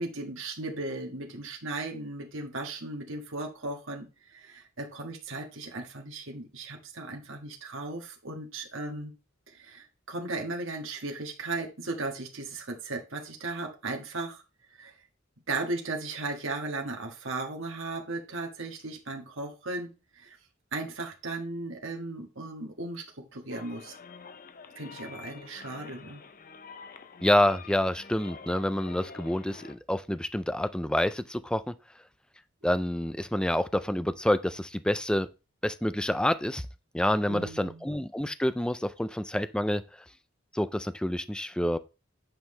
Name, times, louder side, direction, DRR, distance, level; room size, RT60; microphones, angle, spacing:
voice 1, 0.0-9.1 9.5-14.4 14.7-14.9 15.5-20.4 20.7-23.9 24.8-26.2 37.3-37.9, right 2 dB, 70° right, 1.6 m, -36 dB
sound 1, 23.5-29.8, left 5 dB, 45° left, 0.6 m, -47 dB
voice 2, 27.2-31.7 32.6-35.3 35.6-36.7 36.9-39.8 40.5-41.8, left 1 dB, 5° left, 0.4 m, -28 dB
8.9 x 5.6 x 3.2 m
head